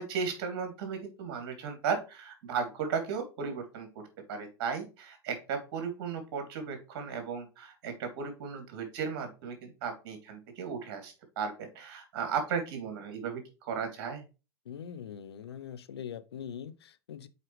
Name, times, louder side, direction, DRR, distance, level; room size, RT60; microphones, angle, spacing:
voice 1, 0.0-3.9 4.3-14.2, right 6 dB, 60° right, 2.9 m, -35 dB
voice 2, 14.7-17.3, left 8 dB, 75° left, 0.7 m, -42 dB
8.0 x 4.7 x 3.2 m
hypercardioid pair, 95°, 13 cm